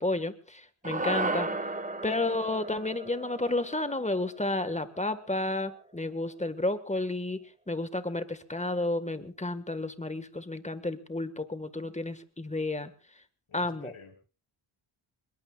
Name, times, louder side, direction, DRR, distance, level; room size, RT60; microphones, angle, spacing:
voice 1, 0.0-1.5 2.0-12.9 13.5-13.9, left 2 dB, 15° left, 10 dB, 1.7 m, -31 dB
sound 1, 0.8-5.3, right 2 dB, 15° right, 1.5 m, -35 dB
voice 2, 13.5-14.1, left 5 dB, 75° left, 3 dB, 5.6 m, -50 dB
26.0 x 22.0 x 2.4 m, 0.36 s
wide cardioid pair, 95°, 50 cm